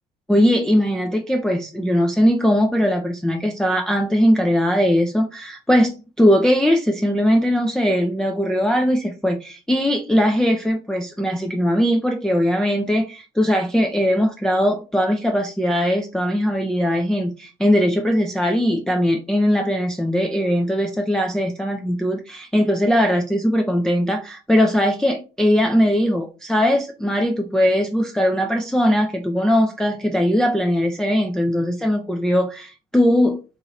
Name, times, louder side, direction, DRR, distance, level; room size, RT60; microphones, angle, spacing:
voice 1, 0.3-33.4, equal, ahead, 2 dB, 0.4 m, -20 dB
2.8 x 2.6 x 4.1 m, 0.32 s
figure-of-eight pair, 55°, 29 cm